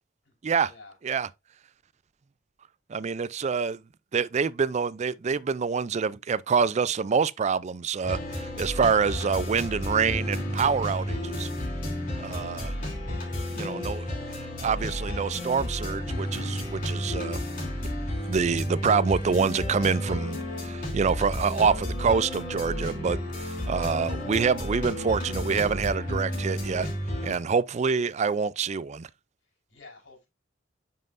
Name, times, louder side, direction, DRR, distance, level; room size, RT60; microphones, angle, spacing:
voice 1, 0.6-0.9 12.7-13.4 29.7-30.3, left 3 dB, 70° left, 4.8 m, -51 dB
voice 2, 2.9-3.8 4.1-11.5 12.2-12.7 13.5-14.1 14.6-17.4 18.3-26.9 27.2-29.1, right 5 dB, 35° right, 0.4 m, -26 dB
sound 1, 8.0-27.4, left 1 dB, 45° left, 3.0 m, -32 dB
9.4 x 5.6 x 2.6 m
head